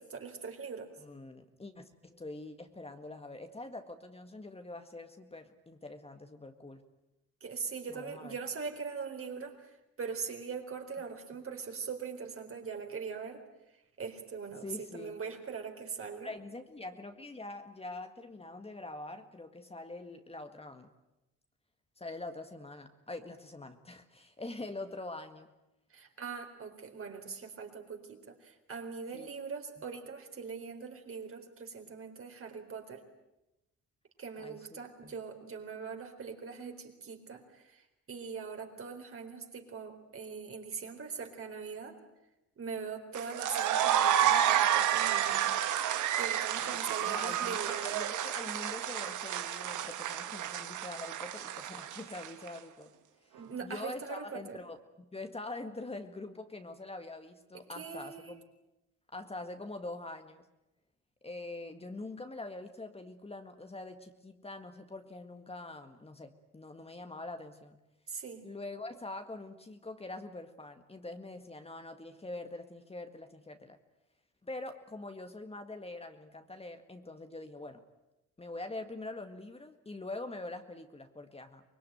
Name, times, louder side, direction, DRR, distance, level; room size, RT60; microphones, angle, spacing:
voice 1, 0.0-0.9 7.4-13.4 13.7-16.3 25.9-33.0 34.2-42.0 42.6-45.6 46.2-47.9 53.4-54.6 57.5-58.4 68.1-68.5, right 5 dB, 45° right, 4 dB, 4.3 m, -42 dB
voice 2, 1.0-6.9 7.9-8.4 14.6-15.2 16.2-20.9 22.0-25.5 29.1-29.3 34.4-35.1 46.6-53.0 53.3-58.4 59.1-60.5 61.2-67.8 68.4-73.8 74.4-77.8 78.4-81.6, left 2 dB, 20° left, 7 dB, 1.8 m, -44 dB
sound 1, 43.1-52.5, right 10 dB, 80° right, 1.6 m, -30 dB
24.5 x 21.0 x 9.3 m, 0.92 s
cardioid pair, 90°, 30 cm